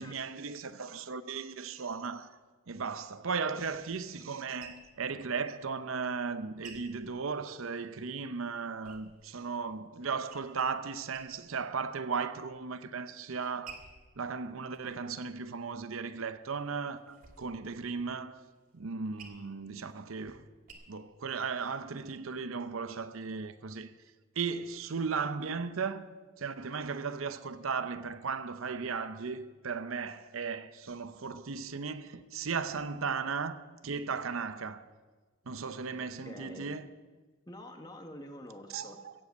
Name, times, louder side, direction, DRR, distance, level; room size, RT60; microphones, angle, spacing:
voice 1, 0.0-2.4 2.7-13.9 14.2-18.4 18.7-20.5 20.9-23.9 24.4-34.8 35.5-36.9 38.7-39.1, right 5 dB, 80° right, 0.7 m, -36 dB
sound 1, 3.2-7.9 8.3-9.5 9.9-10.7 11.1-11.7 12.1-12.7 13.2-15.9 16.4-20.7, right 5 dB, 40° right, 2.4 m, -55 dB
voice 2, 36.0-36.7 37.5-39.0, left 1 dB, 20° left, 1.2 m, -47 dB
15.5 x 7.7 x 8.1 m
head